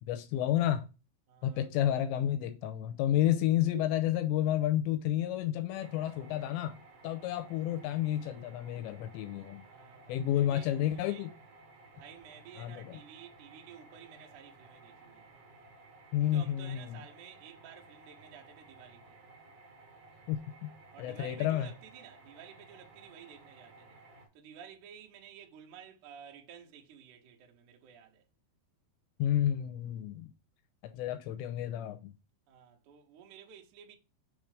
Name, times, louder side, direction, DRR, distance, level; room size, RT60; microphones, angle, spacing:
voice 1, 0.1-0.9 1.4-9.6 10.1-11.3 12.6-13.0 16.1-17.0 20.3-20.7 21.0-21.7 29.2-30.3 30.8-32.1, left 12 dB, 85° left, 2.7 m, -31 dB
voice 2, 1.3-1.7 7.1-7.2 9.6-11.3 11.9-15.5 16.2-19.2 20.9-24.0 24.3-28.2 32.5-33.9, right 8 dB, 85° right, 1.7 m, -53 dB
sound 1, 5.8-24.3, right 3 dB, 65° right, 2.0 m, -56 dB
7.0 x 3.3 x 4.8 m
omnidirectional pair, 5.6 m